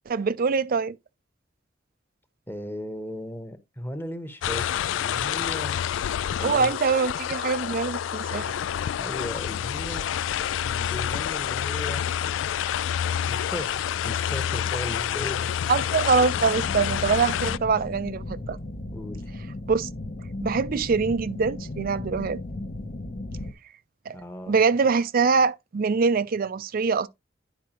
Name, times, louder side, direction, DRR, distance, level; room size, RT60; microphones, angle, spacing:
voice 1, 0.1-1.0 6.4-8.5 15.7-18.6 19.7-19.9 20.4-22.4 24.1-24.2 24.5-27.1, right 5 dB, 50° right, 0.4 m, -24 dB
voice 2, 2.5-5.8 6.4-6.7 9.0-10.1 10.6-12.5 13.3-15.5 18.9-19.3 24.1-24.5, equal, 10° left, 1.0 m, -37 dB
sound 1, 4.4-17.6, left 9 dB, 85° left, 0.3 m, -28 dB
sound 2, 16.3-23.5, left 2 dB, 50° left, 0.9 m, -36 dB
10.5 x 4.7 x 2.9 m
head